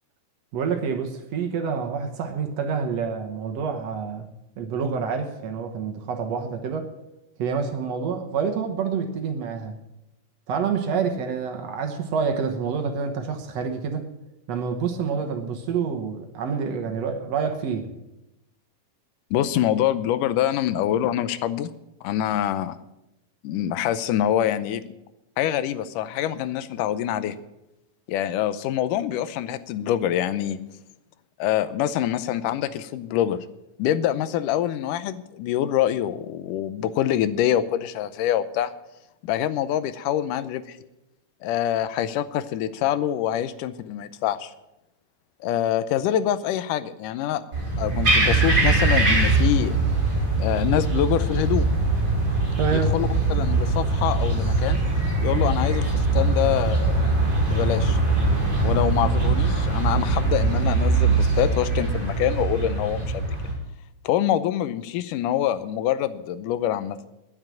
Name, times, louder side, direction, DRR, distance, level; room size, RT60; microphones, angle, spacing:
voice 1, 0.5-4.3 4.6-6.9 7.4-9.7 10.5-14.1 14.5-17.9 52.6-52.9, right 6 dB, 65° right, 5 dB, 2.0 m, -27 dB
voice 2, 19.3-21.7 22.0-22.8 23.4-24.8 25.4-27.4 28.1-30.6 31.4-33.4 33.8-38.7 39.2-40.8 41.4-44.5 45.4-47.4 47.8-49.8 50.4-51.7 52.7-54.8 55.2-57.1 57.5-58.0 58.6-63.3 64.0-67.0, left 11 dB, 90° left, 14 dB, 2.2 m, -25 dB
sound 1, 47.5-63.5, right 3 dB, 30° right, 4.9 m, -22 dB
9.7 x 9.7 x 9.0 m, 0.91 s
omnidirectional pair, 3.7 m